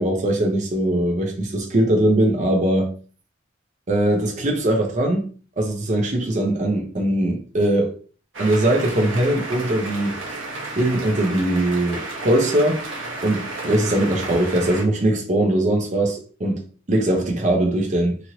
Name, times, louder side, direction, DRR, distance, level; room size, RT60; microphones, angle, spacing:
voice 1, 0.0-2.9 3.9-5.3 5.6-7.9 8.4-10.2 10.8-12.8 13.2-16.6 16.9-18.1, right 1 dB, 40° right, 0.6 m, -21 dB
sound 1, 8.3-14.8, right 2 dB, 85° right, 0.9 m, -32 dB
3.0 x 2.6 x 2.8 m
head